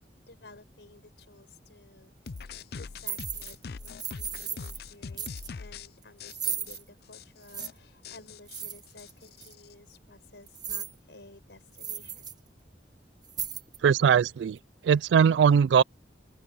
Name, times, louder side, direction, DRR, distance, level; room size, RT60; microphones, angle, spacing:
voice 1, 0.3-2.1 2.4-12.3, left 2 dB, 85° left, 4.8 m, -54 dB
sound 1, 2.3-5.9 6.2-6.8 7.1-7.2 7.5-7.7 8.0-9.7, left 5 dB, 60° left, 0.5 m, -42 dB
sound 2, 2.3-2.4 3.0-3.5 3.8-4.8 5.2-5.5 6.3-6.8 7.5-7.7 8.5-9.1 9.4-9.5 10.5-11.0 11.3-11.4 11.7-12.3 12.7-12.8 13.2-13.9, right 7 dB, 25° right, 0.9 m, -36 dB
voice 2, 13.8-14.6 14.8-15.8, right 7 dB, 80° right, 0.3 m, -20 dB
head